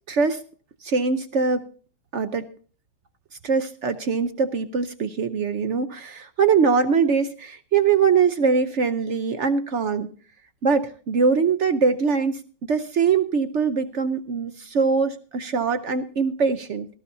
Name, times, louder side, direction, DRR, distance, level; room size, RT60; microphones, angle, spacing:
voice 1, 0.1-0.4 0.8-1.7 2.1-2.5 3.4-10.1 10.6-16.9, right 5 dB, 75° right, 10 dB, 0.6 m, -22 dB
18.5 x 14.5 x 2.7 m, 0.40 s
omnidirectional pair, 2.2 m